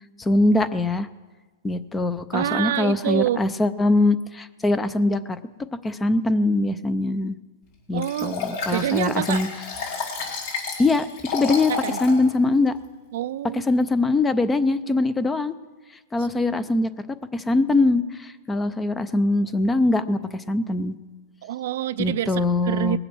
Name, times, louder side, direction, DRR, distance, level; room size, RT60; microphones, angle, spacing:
voice 1, 0.2-1.1 1.6-5.4 5.8-7.4 7.9-9.5 10.8-11.1 11.3-11.7 12.0-12.8 13.5-15.5 16.1-16.9 17.3-21.0 22.0-23.0, left 2 dB, 10° left, 15 dB, 0.5 m, -22 dB
voice 2, 2.3-3.4 7.9-8.4 8.7-9.4 11.5-12.0 13.1-13.7 21.4-23.0, right 13 dB, 65° right, 15 dB, 0.4 m, -27 dB
Liquid, 8.0-12.2 12.7-12.8, left 5 dB, 55° left, 4.7 m, -31 dB
20.0 x 7.9 x 6.2 m, 1.3 s
supercardioid pair, 155°, 0 cm